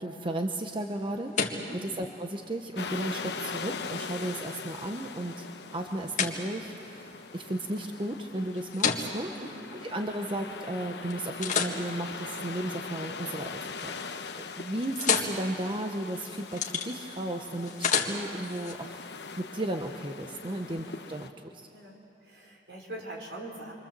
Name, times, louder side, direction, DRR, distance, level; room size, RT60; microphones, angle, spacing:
voice 1, 0.0-1.4 1.8-5.4 5.7-9.3 9.8-19.0 19.4-21.3, right 1 dB, 30° right, 4 dB, 1.0 m, -34 dB
sound 1, 0.7-10.7 11.1-13.4 13.7-14.2 14.5-18.7, left 6 dB, 45° left, 1.9 m, -35 dB
sound 2, 2.8-21.3, left 4 dB, 70° left, 1.1 m, -41 dB
voice 2, 21.7-23.7, right 1 dB, 75° right, 0 dB, 4.8 m, -43 dB
28.5 x 24.0 x 7.6 m, 2.7 s
head